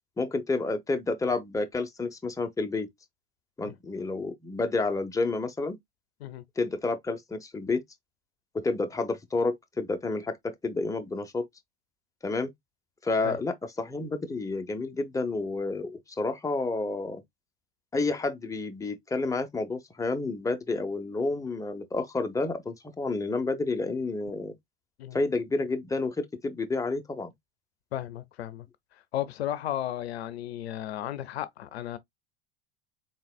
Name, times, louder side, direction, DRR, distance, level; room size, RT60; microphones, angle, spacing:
voice 1, 0.2-2.9 3.6-5.8 6.6-7.8 8.5-11.4 12.2-12.5 13.0-17.2 17.9-24.5 25.1-27.3, left 3 dB, 10° left, 0.9 m, -30 dB
voice 2, 27.9-28.7 29.1-32.0, left 12 dB, 85° left, 0.6 m, -34 dB
3.9 x 3.8 x 2.3 m
hypercardioid pair, 80°, 31 cm